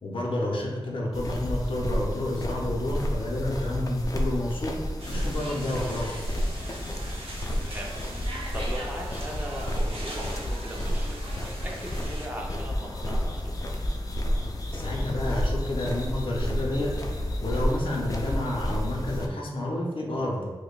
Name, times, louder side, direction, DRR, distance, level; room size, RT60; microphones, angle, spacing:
voice 1, 0.0-4.7 5.1-6.2 14.4-16.9 17.4-20.5, left 1 dB, 60° left, -2 dB, 0.8 m, -30 dB
sound 1, 1.1-19.3, equal, 35° left, 0.4 m, -31 dB
sound 2, 5.0-12.3, right 1 dB, 75° right, 0.8 m, -41 dB
voice 2, 7.2-13.7, equal, 20° right, -1 dB, 0.6 m, -40 dB
4.8 x 2.2 x 2.4 m, 1.3 s
wide cardioid pair, 100°, 10 cm